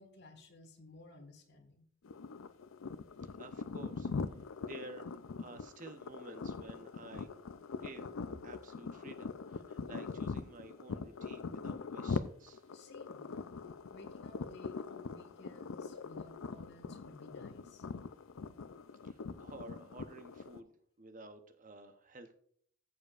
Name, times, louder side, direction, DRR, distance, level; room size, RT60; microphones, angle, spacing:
voice 1, 0.0-1.9 12.7-13.3 13.9-17.9, left 1 dB, 55° left, 3 dB, 1.7 m, -56 dB
sound 1, 2.0-20.6, left 4 dB, 85° left, 0.5 m, -42 dB
voice 2, 3.4-5.0 5.4-7.3 7.8-12.7 19.0-22.3, right 2 dB, 40° right, 8 dB, 0.8 m, -52 dB
14.5 x 7.0 x 2.5 m, 0.62 s
head